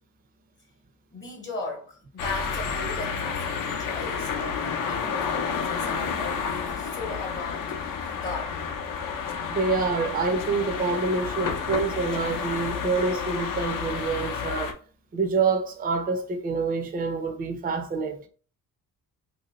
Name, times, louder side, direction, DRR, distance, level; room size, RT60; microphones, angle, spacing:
voice 1, 1.1-8.6, left 2 dB, 35° left, 0.8 m, -37 dB
sound 1, 2.2-14.7, left 6 dB, 65° left, 0.6 m, -30 dB
voice 2, 9.5-14.7 15.1-18.3, right 4 dB, 25° right, 0.5 m, -27 dB
3.1 x 2.7 x 3.0 m
cardioid pair, 140°, 34 cm